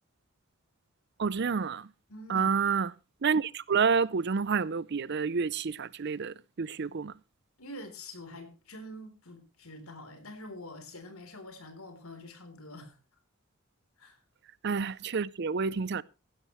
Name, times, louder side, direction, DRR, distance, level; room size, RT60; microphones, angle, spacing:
voice 1, 1.2-1.9 2.3-2.9 3.2-7.1 14.6-16.0, right 5 dB, 50° right, 0.5 m, -29 dB
voice 2, 2.1-2.5 7.6-13.0 14.0-14.2, left 1 dB, 85° left, 3.6 m, -46 dB
15.5 x 12.0 x 3.1 m
head